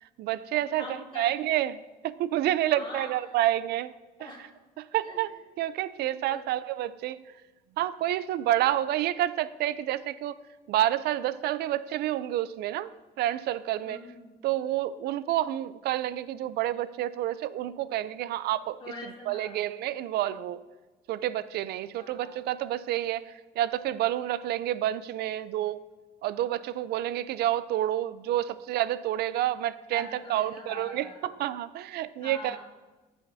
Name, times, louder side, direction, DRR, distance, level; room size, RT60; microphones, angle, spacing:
voice 1, 0.0-0.8 1.2-3.9 4.2-4.3 4.8-5.3 5.6-7.3 7.8-10.4 10.7-14.0 14.4-18.8 19.3-20.6 21.1-25.8 26.2-32.6, right 13 dB, 70° right, 16 dB, 0.4 m, -29 dB
voice 2, 0.8-1.3 2.7-3.2 4.2-4.6 5.0-5.3 6.3-6.5 13.8-14.3 18.8-19.6 22.0-22.4 29.9-31.4 32.2-32.6, left 1 dB, 30° left, -3 dB, 2.7 m, -43 dB
17.0 x 5.7 x 2.7 m, 1.2 s
cardioid pair, 110°, 17 cm